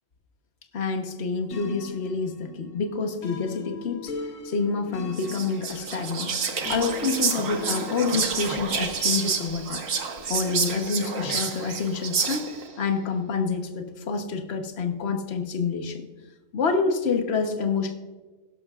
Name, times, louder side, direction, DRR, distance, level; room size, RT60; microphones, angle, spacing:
voice 1, 0.7-4.1 4.4-6.4 6.7-9.8 10.3-12.4 12.8-16.1 16.5-17.9, left 4 dB, 55° left, 5 dB, 1.4 m, -27 dB
sound 1, 1.5-8.4, left 5 dB, 85° left, 1.5 m, -40 dB
Whispering, 5.1-12.7, right 5 dB, 85° right, 1.5 m, -29 dB
16.5 x 12.0 x 2.4 m, 1.2 s
omnidirectional pair, 1.3 m